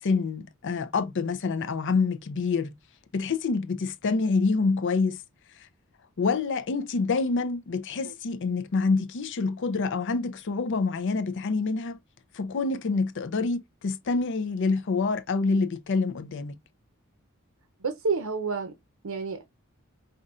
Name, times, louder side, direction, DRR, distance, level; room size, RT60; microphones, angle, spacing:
voice 1, 0.0-2.7 3.1-5.2 6.2-12.0 12.3-16.6, left 4 dB, 60° left, 0.5 m, -27 dB
voice 2, 17.8-18.7 19.0-19.4, right 4 dB, 85° right, 0.7 m, -29 dB
5.3 x 2.5 x 2.4 m
head